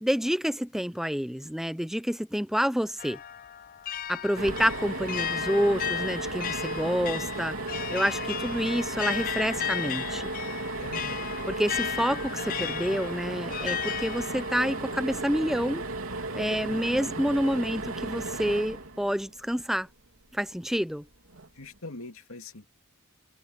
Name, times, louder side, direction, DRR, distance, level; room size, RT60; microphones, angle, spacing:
voice 1, 0.0-3.2 4.1-7.6 7.9-10.3 11.5-15.9 16.3-19.9 20.3-21.0, equal, ahead, 0.6 m, -28 dB
sound 1, 3.0-15.9, left 10 dB, 40° left, 0.4 m, -35 dB
sound 2, 4.4-19.6 21.3-21.5 21.8-21.9, right 3 dB, 70° right, 3.5 m, -35 dB
sound 3, 4.5-5.0, right 1 dB, 20° right, 7.2 m, -42 dB
voice 2, 10.8-11.3 16.6-17.2 21.5-22.7, left 2 dB, 70° left, 2.7 m, -43 dB
head